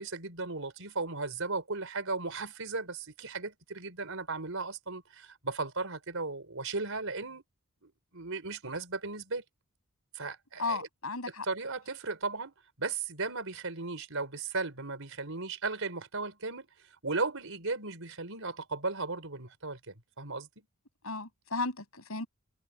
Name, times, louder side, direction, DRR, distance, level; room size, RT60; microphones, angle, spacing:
voice 1, 0.0-7.4 7.8-9.4 10.1-10.9 11.4-16.7 17.0-20.5, right 3 dB, 70° right, 5.2 m, -36 dB
voice 2, 10.6-11.4 21.0-22.3, left 3 dB, 75° left, 7.8 m, -34 dB
head